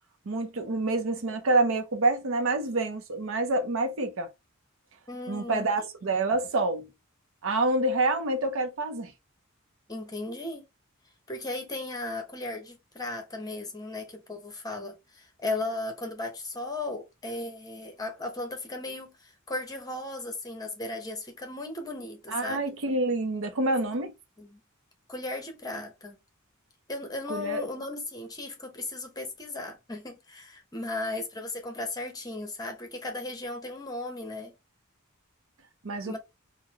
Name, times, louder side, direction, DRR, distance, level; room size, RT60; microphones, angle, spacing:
voice 1, 0.3-4.3 5.3-6.9 7.4-9.1 22.3-24.1 27.3-27.6 35.8-36.2, right 2 dB, 65° right, 0.6 m, -27 dB
voice 2, 5.1-5.9 9.9-10.6 11.3-22.7 24.4-24.6 25.1-26.2 26.9-34.5 36.0-36.2, left 2 dB, 20° left, 0.9 m, -36 dB
3.8 x 2.1 x 2.8 m
head